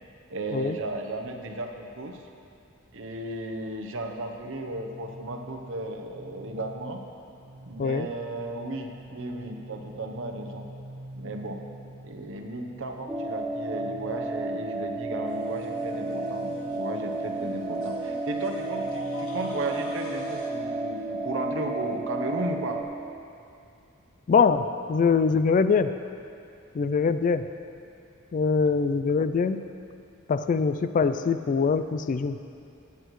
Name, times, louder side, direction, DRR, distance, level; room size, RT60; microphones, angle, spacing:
voice 1, 0.3-2.2 2.9-7.0 7.6-10.7 11.1-11.6 12.0-22.8, right 2 dB, 65° right, 4 dB, 0.9 m, -35 dB
sound 1, 4.3-19.5, right 1 dB, 85° right, 1.4 m, -47 dB
sound 2, 13.1-22.8, right 2 dB, 5° right, 0.6 m, -32 dB
sound 3, 15.2-20.5, left 3 dB, 70° left, 1.6 m, -45 dB
voice 2, 24.3-25.9 26.7-27.5 28.3-29.6 30.3-32.4, left 5 dB, 40° left, 11 dB, 0.3 m, -23 dB
17.0 x 8.3 x 3.1 m, 2.5 s
head